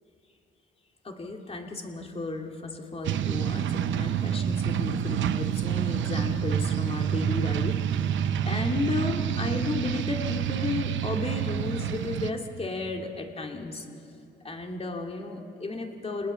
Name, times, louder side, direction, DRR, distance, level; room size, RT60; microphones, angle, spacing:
voice 1, 1.0-7.8 8.4-13.9 14.4-16.3, left 3 dB, 30° left, 2 dB, 2.8 m, -33 dB
sound 1, 3.0-12.3, right 9 dB, 70° right, 0.9 m, -28 dB
27.0 x 20.0 x 7.2 m, 2.6 s
cardioid pair, 90°, 20 cm